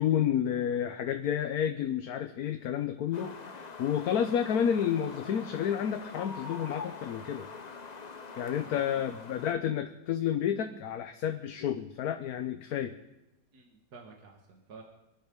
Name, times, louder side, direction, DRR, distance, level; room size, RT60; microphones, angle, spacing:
voice 1, 0.0-7.5 8.4-13.0, left 9 dB, 65° left, 7 dB, 1.2 m, -30 dB
sound 1, 3.1-9.5, left 4 dB, 35° left, 0.7 m, -44 dB
voice 2, 8.5-9.2 13.5-14.8, right 4 dB, 70° right, 1 dB, 2.1 m, -51 dB
25.0 x 11.0 x 5.2 m, 0.96 s
omnidirectional pair, 1.8 m